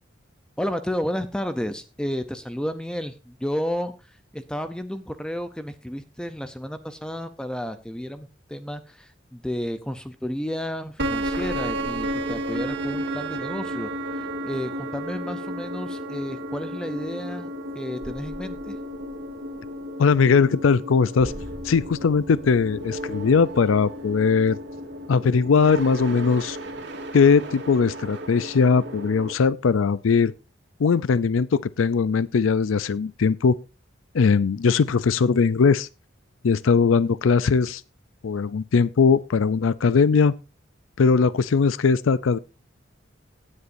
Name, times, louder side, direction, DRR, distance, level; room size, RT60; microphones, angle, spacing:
voice 1, 0.6-17.5 17.8-18.8, equal, 5° left, 0.6 m, -32 dB
sound 1, 11.0-29.3, right 1 dB, 60° right, 2.6 m, -33 dB
voice 2, 20.0-21.3 21.6-24.6 25.1-26.6 27.1-30.3 30.8-33.5 34.1-35.9 36.4-37.8 38.2-40.3 41.0-42.4, left 5 dB, 85° left, 0.5 m, -20 dB
17.0 x 9.8 x 2.6 m
head